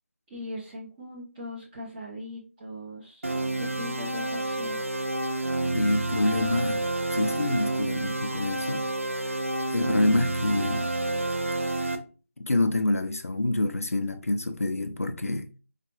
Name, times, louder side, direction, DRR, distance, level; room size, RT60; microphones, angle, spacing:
voice 1, 0.3-3.3 3.5-4.8, left 1 dB, 15° right, 0.7 m, -40 dB
sound 1, 3.2-11.9, right 2 dB, 65° right, 0.7 m, -29 dB
voice 2, 5.7-6.8 7.1-8.9 9.7-10.9 12.4-15.5, left 2 dB, 75° left, 0.5 m, -27 dB
4.8 x 2.4 x 3.0 m
figure-of-eight pair, 160°, 8 cm